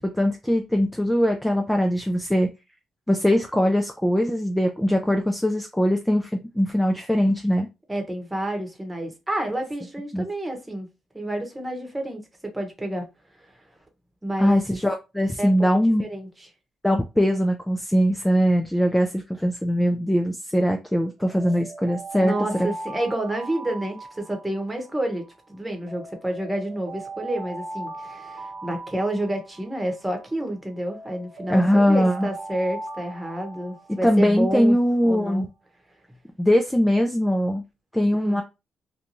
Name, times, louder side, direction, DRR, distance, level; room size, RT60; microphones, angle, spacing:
voice 1, 0.0-2.5 3.1-7.7 10.1-10.2 14.4-16.0 16.8-22.7 31.5-32.3 34.0-35.5 36.4-37.6 37.9-38.4, equal, 5° left, 0.4 m, -21 dB
voice 2, 7.9-10.9 11.1-13.1 13.4-13.5 14.2-14.6 15.4-15.5 16.0-16.3 22.2-34.8 35.0-35.5 38.1-38.4, right 1 dB, 10° right, 1.0 m, -29 dB
Alarm, 21.2-25.3 25.9-30.3 30.9-34.7, right 2 dB, 80° right, 0.5 m, -39 dB
2.6 x 2.2 x 2.9 m
cardioid pair, 90°, 0 cm